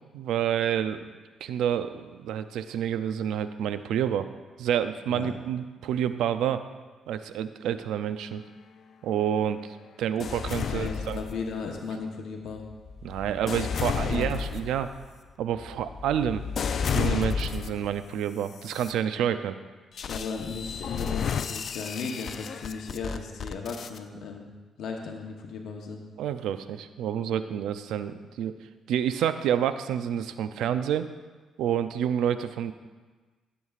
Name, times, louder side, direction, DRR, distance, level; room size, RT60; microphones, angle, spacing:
voice 1, 0.1-1.1 1.4-4.3 4.6-6.6 7.1-8.4 9.0-9.6 10.0-11.2 13.0-14.9 15.4-16.4 16.9-19.6 26.2-28.5 28.9-31.1 31.6-32.7, right 9 dB, 85° right, 11 dB, 0.4 m, -28 dB
sound 1, 10.2-11.8 12.4-17.9 18.5-18.9 20.0-24.0, left 7 dB, 55° left, 0.5 m, -32 dB
voice 2, 10.7-12.6 13.5-13.7 14.1-14.3 20.1-24.5 24.8-26.0, left 4 dB, 70° left, 2 dB, 0.9 m, -36 dB
14.0 x 8.1 x 2.4 m, 1.4 s
cardioid pair, 90°, 0 cm